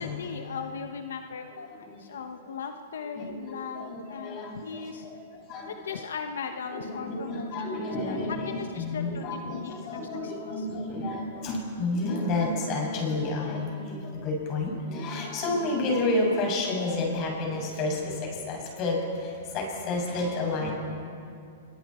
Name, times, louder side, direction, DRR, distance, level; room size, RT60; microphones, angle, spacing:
voice 1, 0.0-5.1 5.7-7.5 8.0-10.7, left 6 dB, 85° left, 6 dB, 1.1 m, -38 dB
voice 2, 1.5-2.3 3.0-6.0 6.7-20.7, left 2 dB, 35° left, -1 dB, 6.4 m, -31 dB
26.5 x 23.0 x 4.5 m, 2.5 s
hypercardioid pair, 150°, 0 cm